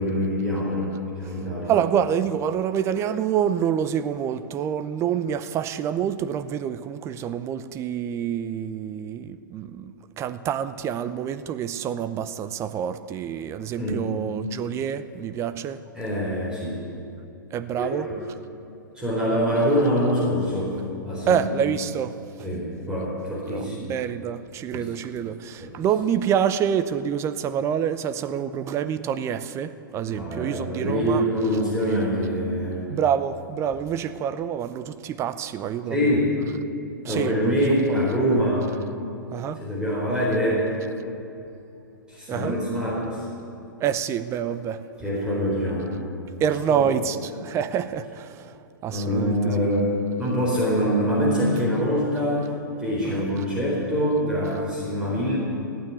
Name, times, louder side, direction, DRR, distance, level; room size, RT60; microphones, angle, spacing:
voice 1, 0.0-1.7 13.8-14.0 15.9-16.8 17.8-18.2 18.9-20.8 21.0-21.4 22.4-23.9 24.7-24.9 25.6-25.7 30.1-32.8 35.9-36.3 37.0-38.7 39.6-40.7 42.1-43.2 45.0-46.0 46.7-46.9 48.8-49.9 50.2-52.5 52.8-55.4, equal, 10° right, -6 dB, 4.2 m, -24 dB
voice 2, 1.6-15.8 17.5-18.1 21.3-22.2 23.5-31.3 32.9-36.2 37.0-37.6 37.9-38.0 39.3-39.6 42.3-42.6 43.8-44.8 46.4-48.5 48.8-49.7 53.0-53.3, right 8 dB, 25° right, 12 dB, 0.7 m, -27 dB
15.5 x 9.2 x 9.5 m, 2.8 s
figure-of-eight pair, 110°, 11 cm